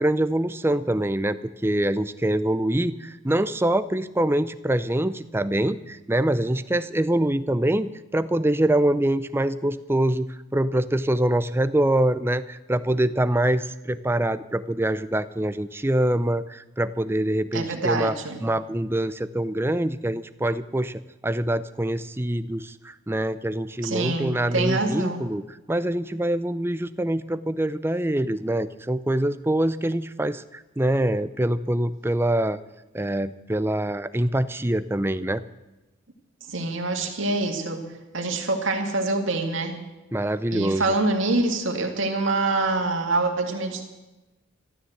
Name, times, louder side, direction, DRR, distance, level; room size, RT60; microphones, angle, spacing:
voice 1, 0.0-18.2 18.4-25.4 25.7-32.6 32.9-35.4 40.1-40.9, right 1 dB, 10° right, 14 dB, 0.5 m, -24 dB
voice 2, 17.5-18.4 23.8-25.2 36.5-37.8 38.1-39.8 40.5-43.9, right 2 dB, 65° right, 3 dB, 2.2 m, -25 dB
13.0 x 13.0 x 7.9 m, 1.1 s
head